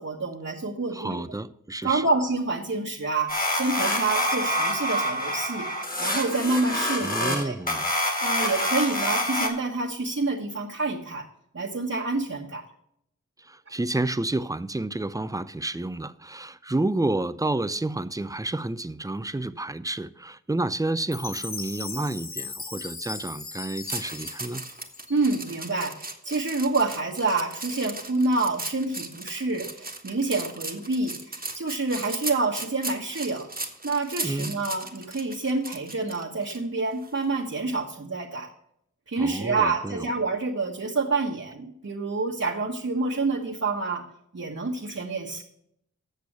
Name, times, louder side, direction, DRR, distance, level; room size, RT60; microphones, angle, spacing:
voice 1, 0.0-1.2 1.8-7.5 8.2-11.2 11.5-12.6 25.1-33.5 33.8-38.5 39.1-44.0 44.3-45.4, right 3 dB, 50° right, 1.4 m, -28 dB
voice 2, 0.9-2.0 7.0-7.9 13.4-24.6 34.2-34.5 39.2-40.0, right 2 dB, 10° right, 0.5 m, -30 dB
sound 1, 3.3-9.5, left 1 dB, 25° left, 2.0 m, -26 dB
Chime, 21.1-25.5, left 4 dB, 40° left, 0.8 m, -38 dB
sound 2, 23.9-36.6 37.0-37.2, right 2 dB, 30° right, 1.4 m, -37 dB
8.4 x 6.7 x 6.1 m
wide cardioid pair, 50°, 32 cm